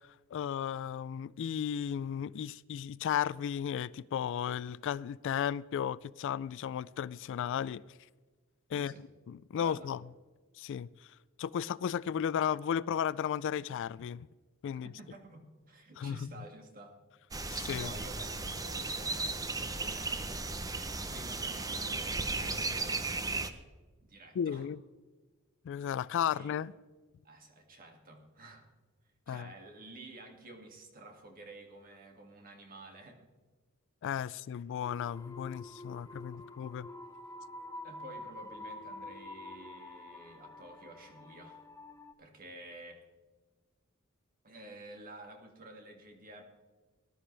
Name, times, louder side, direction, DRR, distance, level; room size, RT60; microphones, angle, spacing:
voice 1, 0.3-7.8 8.7-8.9 9.3-10.0 10.6-10.9 11.4-14.3 14.6-14.9 16.0-16.2 17.5-17.9 24.4-24.8 25.7-26.7 29.3-29.5 34.0-36.9, left 8 dB, 60° left, 0.3 m, -34 dB
voice 2, 8.7-9.0 9.6-9.9 14.8-17.0 17.8-20.7 21.1-23.1 24.0-24.7 26.2-26.7 27.2-28.7 29.3-33.2 37.8-41.7 42.2-43.1 44.4-46.4, right 1 dB, 45° right, 2.2 m, -51 dB
sound 1, 17.3-23.5, right 3 dB, 15° right, 0.8 m, -35 dB
sound 2, 34.8-42.1, left 2 dB, 15° left, 0.7 m, -47 dB
19.5 x 12.0 x 3.3 m
head